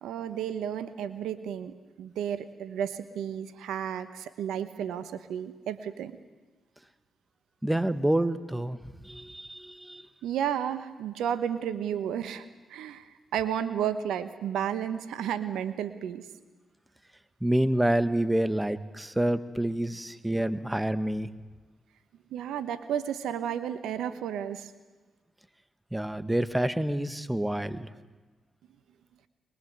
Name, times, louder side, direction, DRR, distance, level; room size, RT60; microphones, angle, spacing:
voice 1, 0.0-6.1 10.2-12.4 12.7-13.1 13.3-16.2 22.3-24.7, right 9 dB, 80° right, 12 dB, 1.1 m, -32 dB
voice 2, 7.6-8.8 9.0-10.1 17.4-21.3 25.9-27.9, right 1 dB, 10° right, 12 dB, 1.7 m, -28 dB
22.5 x 22.0 x 8.0 m, 1.3 s
hypercardioid pair, 45°, 0 cm